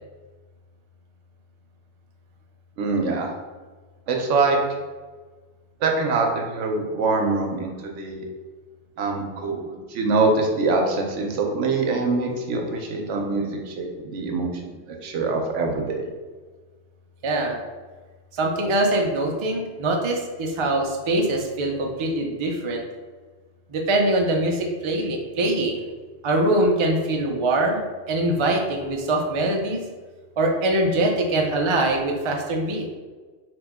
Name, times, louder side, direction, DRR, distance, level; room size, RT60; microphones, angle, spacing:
voice 1, 2.8-3.3 4.1-4.6 5.8-8.3 9.0-16.1, right 3 dB, 80° right, 2 dB, 1.0 m, -24 dB
voice 2, 17.2-17.6 18.3-22.8 23.7-25.9 26.2-29.8 30.4-32.9, right 1 dB, 50° right, 1 dB, 0.3 m, -23 dB
3.3 x 2.9 x 3.5 m, 1.4 s
omnidirectional pair, 1.2 m